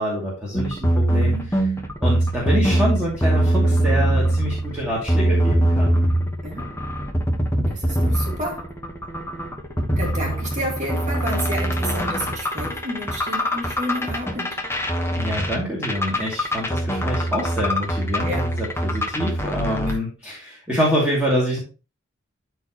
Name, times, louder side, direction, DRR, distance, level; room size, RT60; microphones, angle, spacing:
voice 1, 0.0-1.7 2.0-6.0 15.1-21.6, equal, 5° right, 2.6 m, -26 dB
sound 1, 0.5-19.9, right 1 dB, 15° left, 1.2 m, -23 dB
voice 2, 1.1-1.5 6.4-6.7 7.7-8.7 10.0-14.6 18.2-18.5 19.9-20.0, equal, 35° right, 2.1 m, -30 dB
13.0 x 4.6 x 3.0 m
head